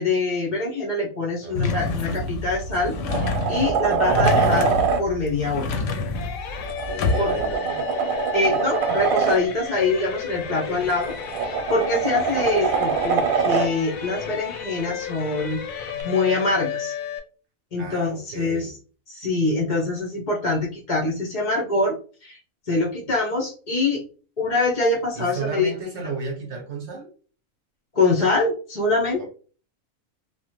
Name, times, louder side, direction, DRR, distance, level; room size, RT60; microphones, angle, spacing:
voice 1, 0.0-4.7 5.0-5.7 7.2-7.3 8.3-11.1 11.4-16.9 17.7-18.7 19.1-22.4 22.7-24.0 24.4-25.7 27.9-29.3, left 3 dB, 45° left, -2 dB, 0.5 m, -24 dB
voice 2, 1.4-1.9 3.7-4.1 6.9-7.9 10.4-10.9 12.1-12.5 17.8-18.7 25.1-27.1 29.2-29.3, right 3 dB, 60° right, 1 dB, 0.9 m, -34 dB
sound 1, 1.5-7.5, left 3 dB, 70° left, 0.9 m, -27 dB
sound 2, 2.1-2.3 2.7-5.0 6.7-9.4 10.9-13.7 16.0-16.1, right 5 dB, 90° right, 1.0 m, -23 dB
sound 3, 6.1-17.2, left 8 dB, 90° left, 1.0 m, -33 dB
3.0 x 2.1 x 3.0 m, 0.39 s
omnidirectional pair, 1.4 m